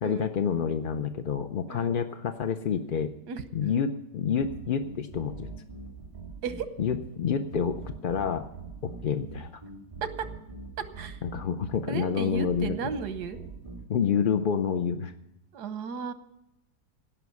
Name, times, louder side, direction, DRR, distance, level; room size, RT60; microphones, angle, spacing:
voice 1, 0.0-3.1 3.5-5.5 6.8-8.5 8.8-9.6 11.2-12.7 13.9-15.1, left 7 dB, 60° left, 6 dB, 0.5 m, -28 dB
sound 1, 4.4-13.8, right 3 dB, 20° right, 1.9 m, -43 dB
voice 2, 11.9-13.4 15.5-16.1, right 6 dB, 85° right, 11 dB, 1.5 m, -34 dB
17.0 x 6.0 x 9.5 m, 0.88 s
omnidirectional pair, 1.7 m